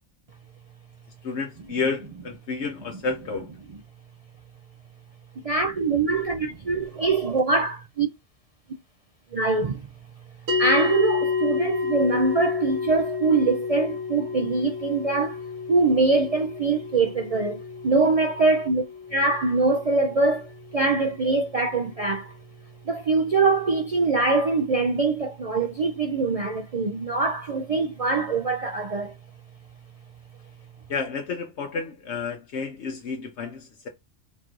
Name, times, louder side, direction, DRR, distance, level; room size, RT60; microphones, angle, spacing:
voice 1, 1.2-3.5 30.9-33.9, left 4 dB, 65° left, 1.0 m, -30 dB
voice 2, 5.4-8.1 9.3-9.9 10.6-18.8 19.1-22.4 22.8-29.2, right 3 dB, 60° right, 0.4 m, -23 dB
sound 1, 10.5-21.0, left 5 dB, 85° right, 1.9 m, -30 dB
4.0 x 2.5 x 4.5 m
omnidirectional pair, 1.3 m